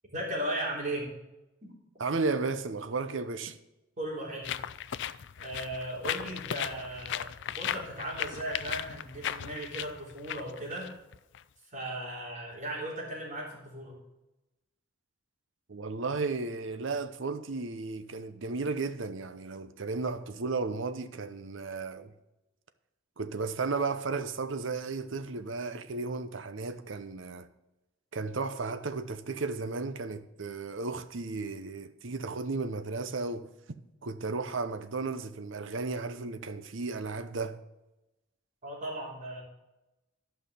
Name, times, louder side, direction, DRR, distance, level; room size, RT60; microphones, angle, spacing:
voice 1, 0.1-1.1 4.0-4.6 5.4-10.9 11.7-14.0 38.6-39.4, right 1 dB, 40° right, 3.7 m, -37 dB
voice 2, 2.0-3.6 15.7-22.1 23.2-27.5 28.1-33.5 34.0-37.6, right 4 dB, 70° right, 0.8 m, -34 dB
sound 1, 4.4-11.4, left 10 dB, 65° left, 0.4 m, -37 dB
11.5 x 5.8 x 6.8 m
head